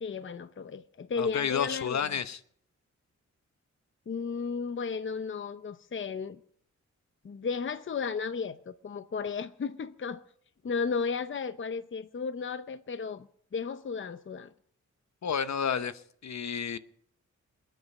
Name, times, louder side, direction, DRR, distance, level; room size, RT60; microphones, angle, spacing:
voice 1, 0.0-2.1 4.1-6.4 7.2-10.2 10.6-13.3 13.5-14.5, left 5 dB, 40° left, 0.7 m, -34 dB
voice 2, 1.2-2.4 15.2-16.8, left 7 dB, 65° left, 1.0 m, -31 dB
27.5 x 9.3 x 5.5 m
wide cardioid pair, 105°, 30 cm